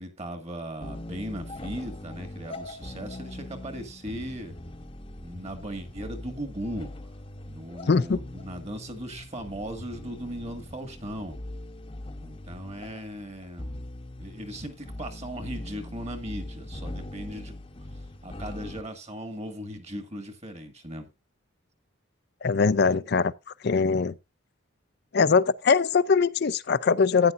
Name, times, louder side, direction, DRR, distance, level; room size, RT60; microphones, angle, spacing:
voice 1, 0.0-4.5 5.2-6.9 7.5-11.4 12.2-13.9 14.2-17.5 18.2-21.1, equal, 30° right, 1.9 m, -38 dB
sound 1, 0.8-18.8, left 1 dB, 25° left, 0.9 m, -41 dB
voice 2, 7.9-8.2 22.4-23.3 23.6-24.1 25.1-27.3, left 5 dB, 50° left, 0.5 m, -22 dB
13.5 x 9.7 x 2.5 m
head